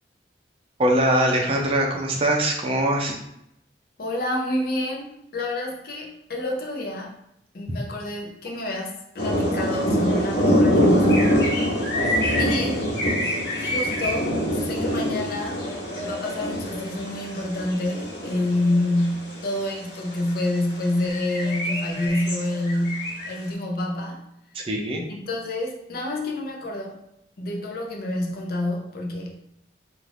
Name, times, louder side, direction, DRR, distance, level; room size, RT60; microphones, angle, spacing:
voice 1, 0.8-3.2 24.5-25.0, right 1 dB, 30° right, 1 dB, 0.5 m, -22 dB
voice 2, 4.0-7.1 7.5-11.4 12.4-12.9 13.6-15.6 16.0-24.2 25.1-27.0 27.4-29.3, left 1 dB, 55° left, 0 dB, 0.5 m, -28 dB
sound 1, 9.2-19.6 20.1-20.3 20.7-23.3, equal, 70° left, 1.0 m, -24 dB
2.4 x 2.4 x 3.3 m, 0.78 s
head